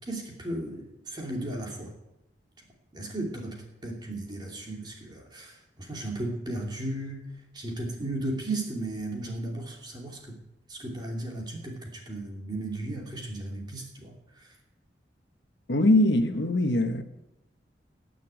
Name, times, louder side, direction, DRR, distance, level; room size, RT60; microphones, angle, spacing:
voice 1, 0.0-1.9 2.9-3.6 3.8-7.3 7.5-10.4 10.7-14.5, right 1 dB, 25° right, 2.8 m, -35 dB
voice 2, 15.7-17.0, left 1 dB, 70° left, 1.2 m, -22 dB
20.0 x 6.8 x 9.1 m
head